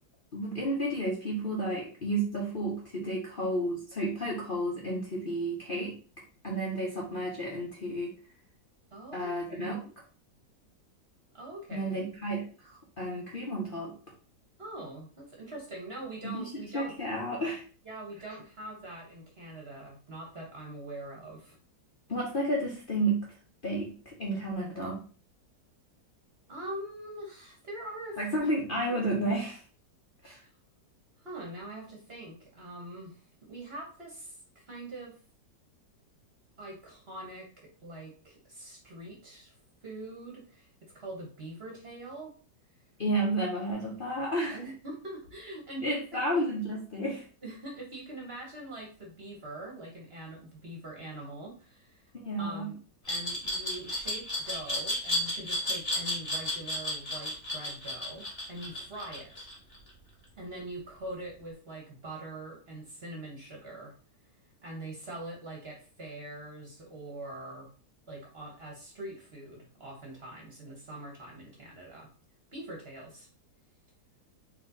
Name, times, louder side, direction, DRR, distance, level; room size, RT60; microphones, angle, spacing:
voice 1, 0.3-6.0 6.4-8.1 9.1-9.8 11.7-13.9 16.2-17.6 22.1-23.3 23.6-25.0 28.2-29.6 30.2-30.4 43.0-44.6 45.8-47.2 52.2-52.7, right 1 dB, 40° left, -4 dB, 0.9 m, -31 dB
voice 2, 8.9-9.9 11.3-12.1 14.6-16.9 17.8-21.6 26.5-28.5 30.3-30.5 31.2-33.2 33.5-35.1 36.6-39.5 39.8-40.7 40.9-42.3 44.5-46.0 46.3-46.5 47.4-52.1 52.4-52.8 53.1-59.5 60.4-63.9 64.6-67.7 68.1-72.1 72.5-73.3, right 1 dB, 40° right, -1 dB, 1.2 m, -43 dB
Glass, 53.1-59.9, left 1 dB, 20° left, 1.6 m, -32 dB
4.3 x 2.9 x 4.0 m, 0.39 s
omnidirectional pair, 1.9 m